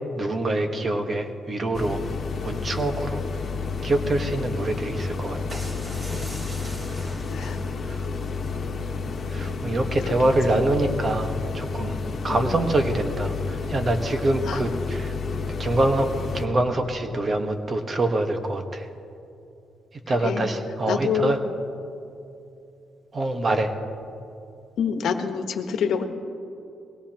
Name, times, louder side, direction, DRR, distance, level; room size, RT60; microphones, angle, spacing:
voice 1, 0.1-2.0 2.4-3.2 3.8-5.6 9.3-12.0 12.2-15.1 15.6-16.1 16.3-18.9 20.1-21.4 23.1-23.7, right 2 dB, 40° right, 5 dB, 1.4 m, -25 dB
sound 1, 1.7-16.5, left 4 dB, 45° left, 1.3 m, -30 dB
sound 2, 5.5-7.9, equal, 20° right, 3.3 m, -38 dB
voice 2, 12.3-12.6 14.4-14.6 20.2-20.4 20.9-21.4 24.8-26.0, left 7 dB, 75° left, 5 dB, 1.2 m, -26 dB
21.5 x 17.5 x 3.0 m, 2.7 s
cardioid pair, 95°, 0 cm